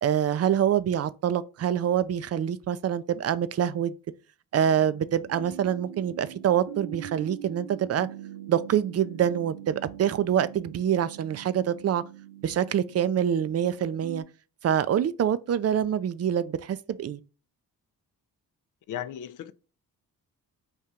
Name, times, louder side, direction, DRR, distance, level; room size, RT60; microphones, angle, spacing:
voice 1, 0.0-3.9 4.5-8.1 8.5-12.0 12.4-14.2 14.6-17.2, right 9 dB, 40° right, 0.4 m, -25 dB
sound 1, 4.5-14.2, right 12 dB, 80° right, 0.6 m, -43 dB
voice 2, 18.9-19.5, left 10 dB, 50° left, 0.5 m, -35 dB
3.6 x 2.7 x 4.3 m
supercardioid pair, 45°, 40 cm